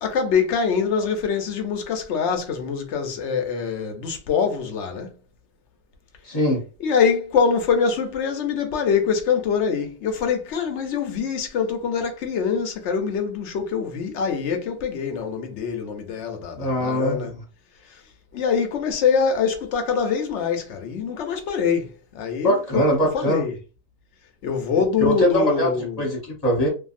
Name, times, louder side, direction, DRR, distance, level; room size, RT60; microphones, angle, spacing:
voice 1, 0.0-5.1 6.8-17.3 17.9-18.0 18.3-22.9 23.1-23.5 24.4-26.0, left 6 dB, 65° left, 0.8 m, -24 dB
voice 2, 6.2-6.6 16.6-17.3 22.4-23.4 25.0-26.7, equal, 30° left, 1.0 m, -22 dB
2.7 x 2.6 x 2.4 m
omnidirectional pair, 1.5 m